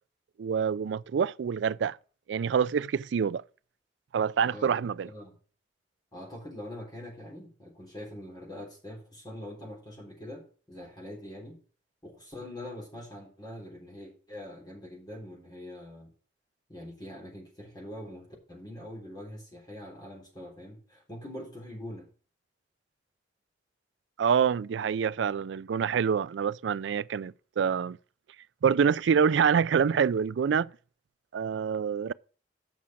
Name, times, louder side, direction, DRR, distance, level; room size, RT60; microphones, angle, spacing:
voice 1, 0.4-2.0 2.3-3.4 4.1-5.1 24.2-28.0 28.6-30.7 31.3-32.1, right 7 dB, 80° right, 0.4 m, -26 dB
voice 2, 4.5-5.3 6.1-11.6 12.0-16.1 16.7-22.1, left 1 dB, 20° left, 3.6 m, -43 dB
7.2 x 6.2 x 7.0 m
head